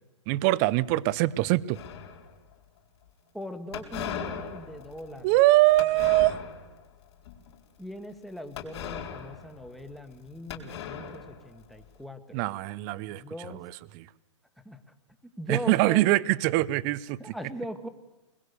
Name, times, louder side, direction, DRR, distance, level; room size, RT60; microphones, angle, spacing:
voice 1, 0.3-1.8 5.2-6.4 12.3-13.2 13.6-13.7 14.0-14.1 15.5-17.2, right 18 dB, 35° right, 0.7 m, -23 dB
sound 1, 1.7-2.5 3.7-6.8 7.2-7.6 8.6-10.2 10.5-11.8, left 8 dB, 60° left, 4.2 m, -39 dB
voice 2, 3.3-5.4 7.8-12.4 13.1-13.6 14.6-14.8 15.4-16.4 17.2-17.9, equal, ahead, 1.6 m, -40 dB
23.0 x 21.0 x 6.9 m
hypercardioid pair, 140°, 16 cm